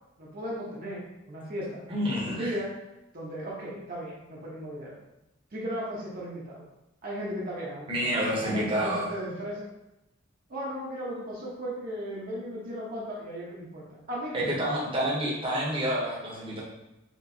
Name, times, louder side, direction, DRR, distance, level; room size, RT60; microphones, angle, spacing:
voice 1, 0.2-1.8 2.1-2.7 3.1-5.0 5.5-6.7 7.0-8.1 8.4-9.7 10.5-14.8, equal, 50° right, -5 dB, 0.9 m, -36 dB
voice 2, 1.9-2.6 7.9-9.1 14.3-16.6, equal, 25° right, -6 dB, 1.0 m, -29 dB
4.5 x 2.9 x 2.7 m, 0.93 s
head